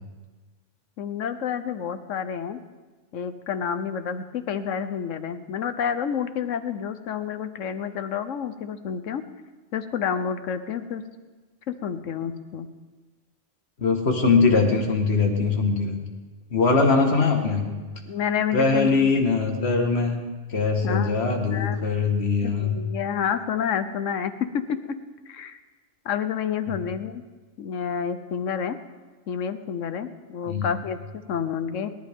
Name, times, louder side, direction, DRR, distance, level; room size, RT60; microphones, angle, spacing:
voice 1, 1.0-2.6 3.1-9.2 9.7-11.0 11.7-12.7 18.0-19.1 20.8-21.1 21.5-21.8 22.4-24.9 25.3-25.6 26.0-27.2 27.6-28.8 29.3-31.9, left 7 dB, 90° left, 10 dB, 1.2 m, -29 dB
voice 2, 13.8-16.0 16.5-17.7 18.5-20.2 20.5-22.8 30.5-30.7, left 4 dB, 60° left, 2 dB, 1.9 m, -21 dB
29.0 x 11.5 x 3.6 m, 1.3 s
omnidirectional pair, 1.3 m